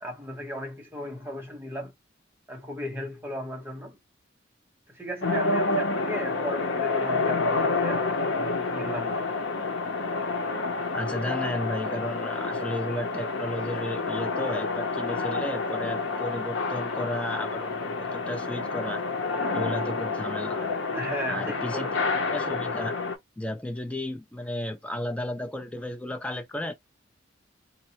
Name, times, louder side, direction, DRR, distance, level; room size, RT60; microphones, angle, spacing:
voice 1, 0.0-1.9 2.5-4.0 4.9-9.5 20.9-22.0, equal, 10° right, 0.9 m, -36 dB
sound 1, 5.2-23.1, left 3 dB, 75° left, 0.7 m, -29 dB
voice 2, 10.9-19.0 19.5-20.7 21.3-23.0 23.4-26.7, left 1 dB, 5° left, 0.3 m, -33 dB
4.0 x 2.0 x 2.8 m
head